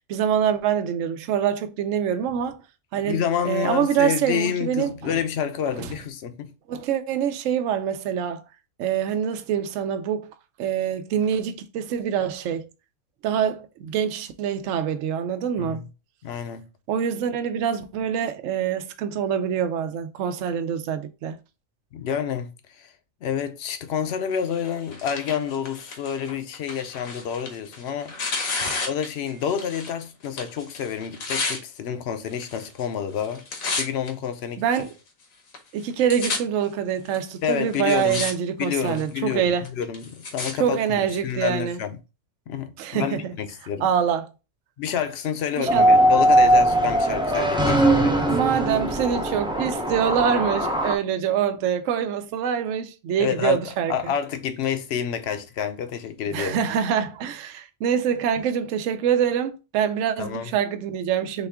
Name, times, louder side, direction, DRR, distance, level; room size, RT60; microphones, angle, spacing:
voice 1, 0.1-2.6 2.9-5.2 5.8-5.9 6.7-8.4 8.8-10.3 10.6-12.7 13.2-15.9 16.9-21.4 28.6-28.7 34.6-34.9 35.7-39.7 40.6-41.8 42.8-43.3 43.8-44.3 45.6-45.9 48.3-54.1 56.3-61.5, right 8 dB, 70° right, 0.9 m, -25 dB
voice 2, 3.0-6.5 15.6-15.9 16.2-16.7 21.9-22.9 23.2-28.1 28.9-33.4 33.8-34.6 37.4-38.3 38.6-42.0 42.5-43.9 44.8-48.4 53.2-53.6 53.9-56.6 60.2-60.5, left 8 dB, 60° left, 0.8 m, -28 dB
Tearing, 24.5-30.0 30.2-31.6 32.3-32.8 33.1-34.1 34.7-34.8 35.5-35.6 35.8-36.4 37.1-37.2 37.7-38.3 38.6-39.1 39.6-40.5 41.3-41.4, left 3 dB, 85° left, 1.5 m, -31 dB
sound 1, 45.7-51.0, right 1 dB, 10° right, 0.3 m, -20 dB
4.2 x 3.4 x 3.4 m
omnidirectional pair, 1.4 m